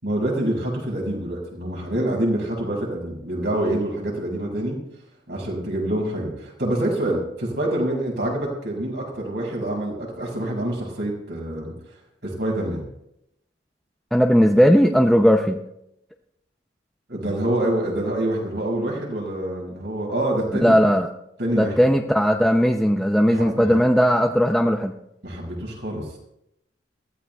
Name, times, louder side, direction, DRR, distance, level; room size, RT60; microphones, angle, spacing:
voice 1, 0.0-4.8 5.3-11.7 12.2-12.8 17.1-20.7 21.4-21.9 23.3-23.8 25.2-26.1, right 1 dB, 70° right, -2 dB, 6.2 m, -26 dB
voice 2, 14.1-15.6 20.6-21.1 21.6-24.9, equal, ahead, 2 dB, 0.5 m, -17 dB
22.5 x 15.5 x 2.3 m, 0.81 s
head